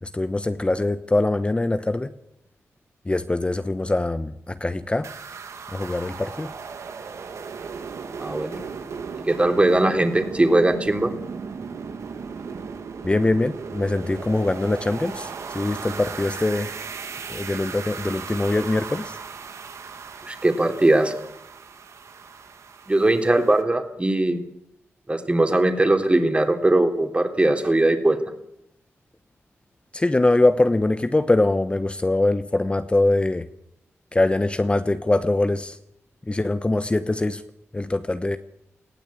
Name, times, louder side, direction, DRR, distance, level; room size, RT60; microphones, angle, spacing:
voice 1, 0.0-2.1 3.1-5.1 5.7-6.5 13.0-16.7 17.3-19.2 29.9-33.5 34.1-35.8 36.3-37.4 37.7-38.4, left 2 dB, 20° left, 10 dB, 1.0 m, -23 dB
sound 1, 5.0-23.6, right 5 dB, 75° right, 1.9 m, -36 dB
voice 2, 8.2-8.6 9.3-11.1 20.3-21.1 22.9-24.4 25.1-28.2, right 2 dB, 25° right, 4 dB, 3.4 m, -20 dB
19.5 x 15.5 x 8.6 m, 0.79 s
cardioid pair, 65°, 5 cm